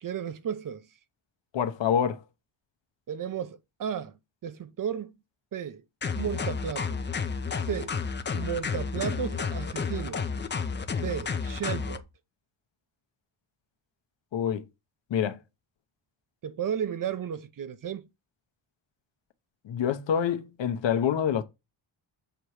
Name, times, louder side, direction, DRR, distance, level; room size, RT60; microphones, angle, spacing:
voice 1, 0.0-0.9 3.1-4.2 4.4-5.1 5.5-5.8 6.1-7.0 7.6-8.0 8.3-10.2 11.0-12.0 16.4-18.0, right 8 dB, 40° right, 0.6 m, -33 dB
voice 2, 1.5-2.2 14.3-14.6 15.1-15.4 19.6-21.4, left 8 dB, 65° left, 0.9 m, -26 dB
sound 1, 6.0-12.0, left 5 dB, 25° left, 0.5 m, -31 dB
6.9 x 3.0 x 4.7 m
wide cardioid pair, 160°, 48 cm